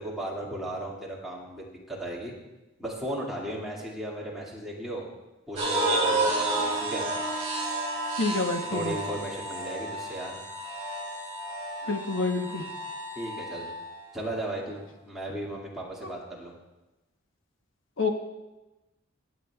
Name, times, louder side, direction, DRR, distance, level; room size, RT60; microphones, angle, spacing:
voice 1, 0.0-2.3 2.8-5.1 5.5-7.0 8.7-10.4 13.2-13.7 14.1-16.5, right 1 dB, ahead, -5 dB, 2.0 m, -36 dB
sound 1, 5.6-13.9, right 2 dB, 30° right, 2.9 m, -31 dB
voice 2, 8.2-8.9 11.9-12.6 18.0-18.1, left 3 dB, 85° left, 4 dB, 1.0 m, -27 dB
23.0 x 8.1 x 2.3 m, 1.1 s
head